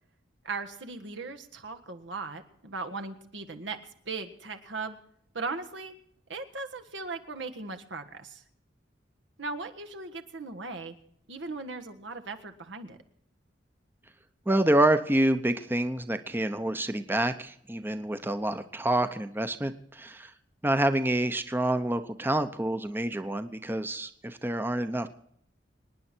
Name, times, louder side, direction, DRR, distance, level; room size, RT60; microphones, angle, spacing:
voice 1, 0.4-3.8 4.0-5.0 5.3-5.9 6.3-8.4 9.4-10.9 11.3-13.0, right 3 dB, 80° right, 6 dB, 1.6 m, -38 dB
voice 2, 14.5-20.3 20.6-25.1, right 1 dB, 10° right, 10 dB, 0.8 m, -27 dB
26.0 x 9.9 x 4.4 m, 0.68 s
head